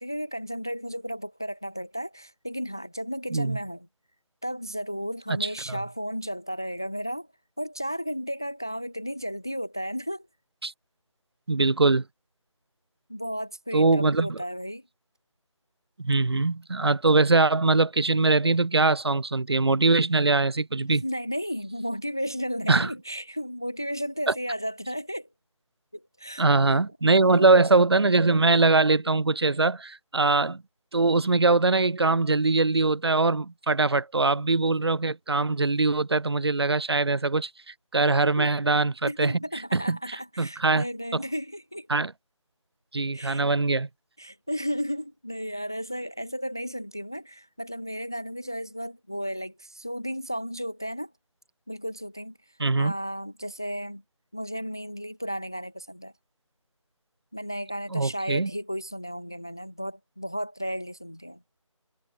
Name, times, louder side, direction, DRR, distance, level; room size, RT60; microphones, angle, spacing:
voice 1, 0.0-3.9 4.4-7.3 7.6-10.3 13.1-14.8 21.0-25.3 25.9-26.8 27.2-27.5 38.4-38.5 39.1-41.9 43.1-43.4 44.2-51.1 51.7-54.0 54.3-56.1 57.3-61.4, equal, 5° left, 0.6 m, -34 dB
voice 2, 11.5-12.0 13.7-14.3 16.0-21.0 22.7-22.9 26.4-30.6 30.9-37.5 37.9-39.3 39.7-40.0 40.4-40.8 41.9-42.1 42.9-43.9 52.6-52.9 57.9-58.5, right 3 dB, 50° right, 1.3 m, -22 dB
figure-of-eight pair, 175°, 17 cm